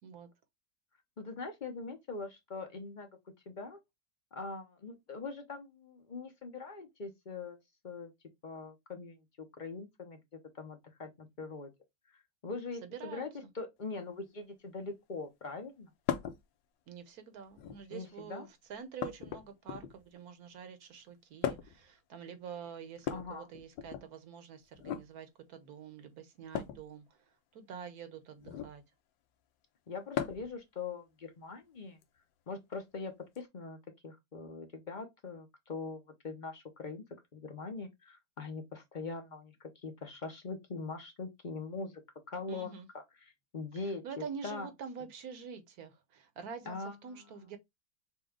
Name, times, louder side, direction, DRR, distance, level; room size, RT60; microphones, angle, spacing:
voice 1, 1.2-3.1 3.5-3.8 4.3-7.6 7.8-8.1 8.4-10.2 10.5-11.7 12.4-15.9 17.9-18.5 23.1-23.5 29.9-32.0 32.5-33.8 34.0-37.0 37.3-42.0 42.3-43.0 43.5-44.0 44.4-44.7 46.7-47.5, left 4 dB, 45° left, 0.6 m, -42 dB
voice 2, 12.8-13.3 16.9-28.8 42.5-42.9 43.8-47.6, right 7 dB, 60° right, 1.2 m, -47 dB
sound 1, 16.1-16.4 17.5-18.0 19.0-20.1 21.4-21.9 23.0-24.1 24.7-25.1 26.5-26.8 28.4-28.8 30.1-30.6 32.0-32.1 33.3-33.4, left 9 dB, 80° left, 1.3 m, -37 dB
6.1 x 2.3 x 3.5 m
omnidirectional pair, 2.0 m